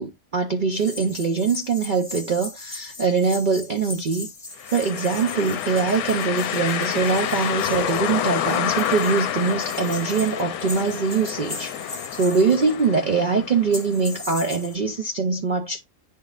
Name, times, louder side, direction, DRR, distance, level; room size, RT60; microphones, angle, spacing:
voice 1, 0.0-4.3 4.7-15.8, right 5 dB, 80° right, 0.4 m, -23 dB
sound 1, 0.7-13.0 13.7-14.8, left 3 dB, 20° left, 0.6 m, -39 dB
sound 2, 4.6-14.4, left 10 dB, 70° left, 1.0 m, -28 dB
11.0 x 3.7 x 2.4 m
omnidirectional pair, 1.8 m